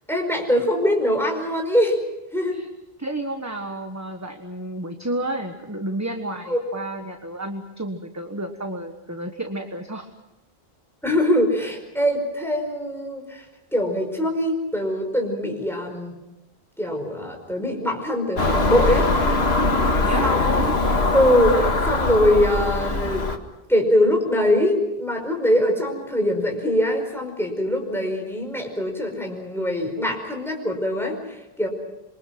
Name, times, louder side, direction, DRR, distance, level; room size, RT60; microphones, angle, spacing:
voice 1, 0.1-2.0 2.3-2.6 6.5-6.6 11.0-13.4 13.7-16.2 16.8-19.1 20.2-20.6 21.1-23.3 23.7-31.7, left 1 dB, ahead, 2 dB, 5.1 m, -22 dB
voice 2, 3.0-10.1 20.0-20.3, right 1 dB, 15° right, 4 dB, 1.4 m, -31 dB
Car passing by / Engine, 18.4-23.4, left 2 dB, 80° left, 2.0 m, -21 dB
27.5 x 23.5 x 6.1 m, 0.96 s
omnidirectional pair, 1.0 m